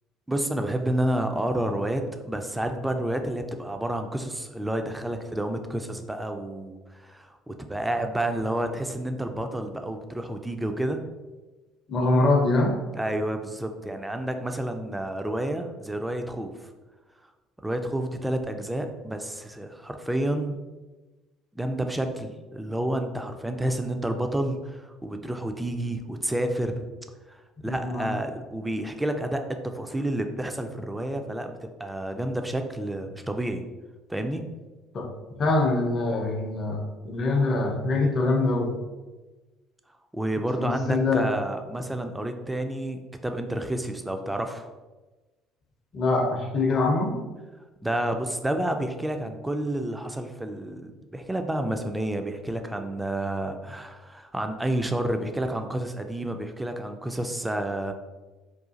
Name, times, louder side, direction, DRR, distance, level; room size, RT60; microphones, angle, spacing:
voice 1, 0.3-11.0 12.9-16.7 17.6-20.6 21.5-26.9 27.3-33.6 34.1-34.4 40.1-44.7 47.8-57.9, right 1 dB, 10° right, 6 dB, 0.3 m, -30 dB
voice 2, 11.9-12.8 27.6-28.1 34.9-35.1 35.4-38.7 40.6-41.3 45.9-47.2, left 2 dB, 45° left, 3 dB, 0.6 m, -24 dB
3.9 x 2.4 x 2.4 m, 1.2 s
figure-of-eight pair, 55°, 0 cm